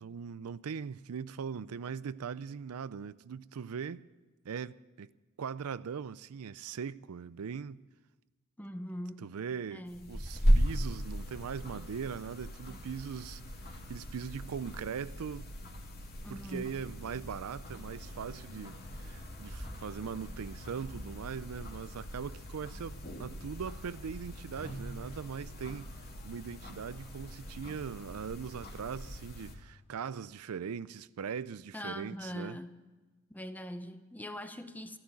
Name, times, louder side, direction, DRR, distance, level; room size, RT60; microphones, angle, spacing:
voice 1, 0.0-4.1 4.4-5.1 5.4-7.8 9.2-15.5 16.3-25.9 26.2-32.6, right 6 dB, 80° right, 0.4 m, -40 dB
voice 2, 8.6-9.4 9.7-10.3 16.2-16.7 31.7-32.8 33.3-35.0, equal, 10° left, 0.8 m, -42 dB
sound 1, 9.9-29.5, equal, 45° left, 2.4 m, -37 dB
14.0 x 11.5 x 8.5 m
head